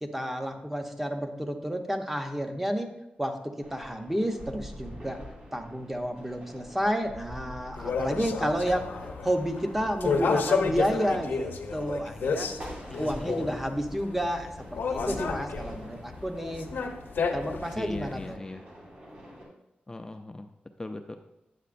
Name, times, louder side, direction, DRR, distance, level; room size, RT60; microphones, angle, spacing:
voice 1, 0.0-2.9 3.2-5.2 5.5-8.9 9.2-12.5 13.0-16.7 17.3-18.4, equal, 10° right, 5 dB, 0.8 m, -30 dB
sound 1, 3.6-19.4, equal, 45° right, 2.5 m, -46 dB
sound 2, 7.7-18.3, left 5 dB, 90° left, 0.8 m, -31 dB
voice 2, 12.9-13.6 17.8-18.6 19.9-20.5 20.8-21.2, left 2 dB, 20° left, 5 dB, 0.4 m, -38 dB
9.5 x 7.6 x 2.5 m, 0.88 s
wide cardioid pair, 120°, 3 cm